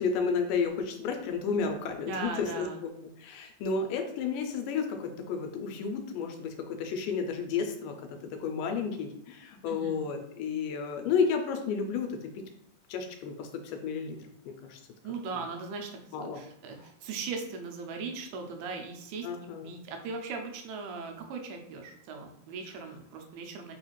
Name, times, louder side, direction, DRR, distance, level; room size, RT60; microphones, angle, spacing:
voice 1, 0.0-2.9 3.2-8.0 8.4-12.1 12.9-14.2 14.5-14.8 16.1-16.4 19.2-19.8, left 5 dB, 80° left, 5 dB, 2.1 m, -32 dB
voice 2, 2.1-2.8 9.7-10.0 15.0-19.3 19.6-23.7, right 4 dB, 85° right, 3 dB, 2.3 m, -39 dB
5.3 x 2.4 x 3.0 m, 0.76 s
omnidirectional pair, 3.9 m